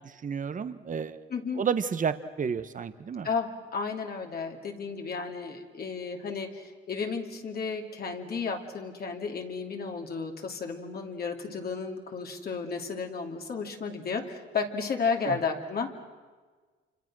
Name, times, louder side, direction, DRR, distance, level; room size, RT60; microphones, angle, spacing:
voice 1, 0.2-1.2 1.6-3.3 15.3-15.4, right 6 dB, 40° right, 11 dB, 1.2 m, -31 dB
voice 2, 1.3-1.6 3.2-15.9, left 5 dB, 50° left, 2 dB, 2.7 m, -33 dB
28.0 x 26.0 x 6.2 m, 1.4 s
cardioid pair, 90°, 20 cm